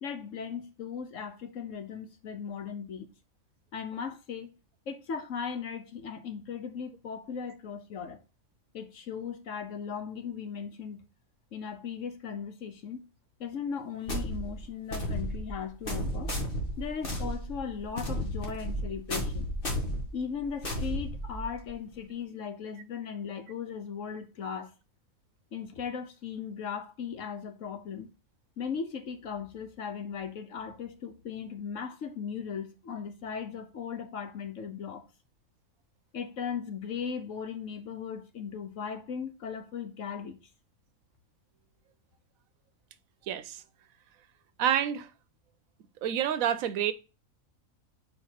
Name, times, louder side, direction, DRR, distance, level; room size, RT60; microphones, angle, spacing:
voice 1, 0.0-3.1 3.7-4.5 4.9-8.2 8.7-11.0 11.5-13.0 13.4-16.3 16.8-19.5 20.1-24.7 25.5-28.1 28.6-35.1 36.1-40.4, left 6 dB, 70° left, 1.3 m, -37 dB
sound 1, 14.1-21.7, equal, 40° left, 1.7 m, -34 dB
voice 2, 43.3-43.6 44.6-45.1 46.0-46.9, right 10 dB, 85° right, 1.1 m, -28 dB
4.7 x 4.6 x 5.7 m
omnidirectional pair, 1.4 m